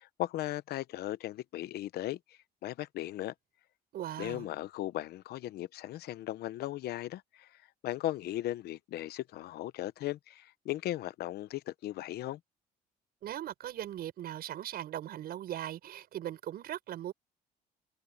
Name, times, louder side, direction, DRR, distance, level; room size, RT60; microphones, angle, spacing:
voice 1, 0.0-3.3 4.2-7.5 7.8-12.4, left 14 dB, 70° left, 0.9 m, -37 dB
voice 2, 3.9-4.5 13.2-17.1, right 12 dB, 65° right, 6.7 m, -39 dB
cardioid pair, 110°, 17 cm